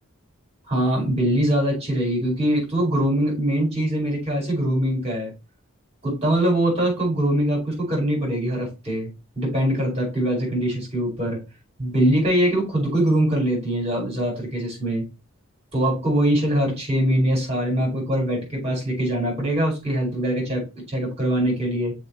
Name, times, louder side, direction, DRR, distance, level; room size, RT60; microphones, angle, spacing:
voice 1, 0.7-5.3 6.0-11.4 11.8-15.0 15.7-21.9, right 1 dB, 30° right, -1 dB, 4.7 m, -23 dB
6.3 x 5.1 x 4.2 m, 0.27 s
head